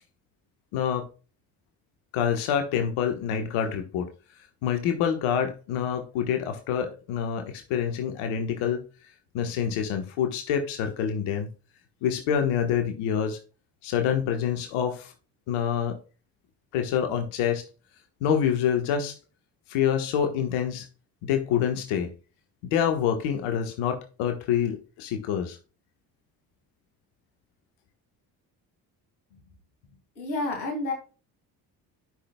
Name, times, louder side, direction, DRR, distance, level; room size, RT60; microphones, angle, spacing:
voice 1, 0.7-1.1 2.1-4.1 4.6-8.8 9.3-11.5 12.0-13.4 13.8-15.1 15.5-16.0 16.7-17.6 18.2-19.1 19.7-20.9 21.2-22.1 22.6-25.6, left 8 dB, 75° left, 1.4 m, -26 dB
voice 2, 30.2-30.9, left 2 dB, 90° left, 2.4 m, -30 dB
11.5 x 6.0 x 2.2 m
hypercardioid pair, 50°, 50 cm